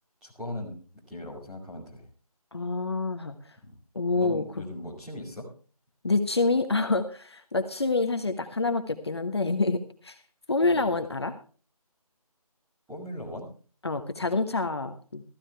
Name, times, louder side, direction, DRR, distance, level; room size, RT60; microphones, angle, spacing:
voice 1, 0.2-0.8 1.1-2.0 3.6-3.7 4.1-5.5 10.6-10.8 12.9-13.5, left 1 dB, 5° right, -8 dB, 2.4 m, -39 dB
voice 2, 2.5-3.6 3.9-4.4 6.0-10.2 10.5-11.3 13.8-15.2, left 3 dB, 45° left, 7 dB, 1.2 m, -27 dB
15.0 x 14.5 x 3.3 m, 0.38 s
figure-of-eight pair, 175°, 20 cm